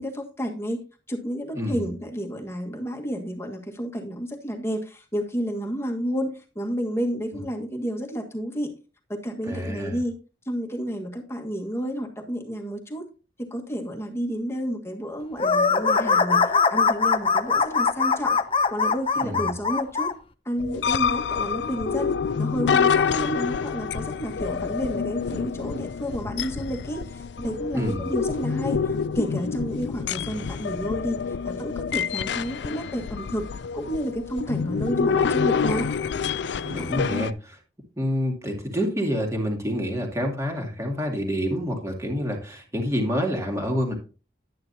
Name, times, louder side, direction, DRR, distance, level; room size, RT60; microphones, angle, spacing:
voice 1, 0.0-8.7 9.1-10.2 10.4-13.0 13.4-18.4 18.7-20.1 20.4-22.1 22.4-35.9, equal, 15° left, 2 dB, 1.6 m, -31 dB
voice 2, 1.5-1.9 9.4-10.0 19.2-19.5 27.7-28.1 36.6-37.6 38.0-44.0, equal, 15° right, 1 dB, 2.3 m, -27 dB
sound 1, 15.4-20.1, left 4 dB, 30° left, 0.6 m, -21 dB
sound 2, 20.6-37.3, left 6 dB, 80° left, 0.4 m, -27 dB
10.5 x 9.6 x 2.8 m, 0.33 s
head